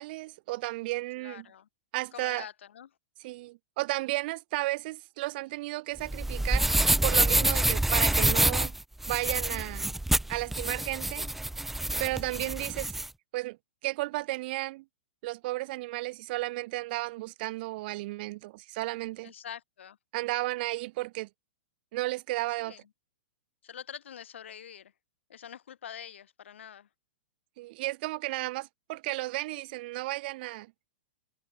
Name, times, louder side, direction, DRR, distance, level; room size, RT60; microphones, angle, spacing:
voice 1, 0.0-1.5 1.9-2.4 3.2-6.7 7.0-8.7 9.1-9.9 10.3-11.3 12.0-12.9 13.3-13.6 13.8-14.8 15.2-19.3 20.1-21.3 21.9-22.7 27.6-30.7, right 20 dB, 55° right, 2.2 m, -33 dB
voice 2, 1.2-1.7 2.1-2.9 12.3-12.5 19.2-20.0 22.6-22.8 23.6-24.9 25.3-26.9, left 9 dB, 75° left, 5.2 m, -45 dB
sound 1, 6.0-13.1, right 1 dB, 5° right, 0.7 m, -27 dB
hypercardioid pair, 130°, 6 cm